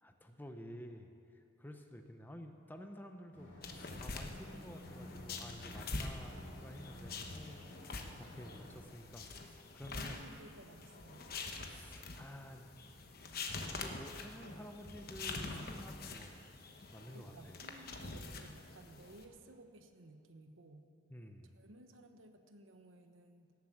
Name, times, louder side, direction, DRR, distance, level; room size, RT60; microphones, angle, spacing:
voice 1, 0.0-10.2 11.6-12.7 13.7-16.4 16.9-17.6 21.1-21.5, equal, 10° left, 5 dB, 0.7 m, -51 dB
sound 1, 3.3-8.8, left 1 dB, 70° left, 4.2 m, -53 dB
sound 2, 3.6-19.2, left 3 dB, 50° left, 1.1 m, -46 dB
voice 2, 9.9-11.3 17.1-20.9 21.5-23.5, right 1 dB, 80° right, 7 dB, 1.1 m, -57 dB
17.5 x 7.8 x 7.3 m, 2.5 s
head